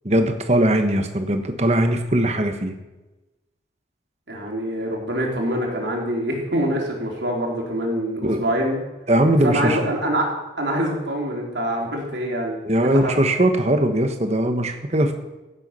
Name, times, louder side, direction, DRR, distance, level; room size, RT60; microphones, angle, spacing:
voice 1, 0.0-2.7 8.2-8.4 9.1-9.8 12.7-15.2, right 1 dB, 35° right, 6 dB, 1.2 m, -20 dB
voice 2, 4.3-8.8 9.4-10.3 10.6-13.1, equal, 80° right, -1 dB, 3.4 m, -25 dB
15.5 x 8.2 x 5.6 m, 1.1 s
head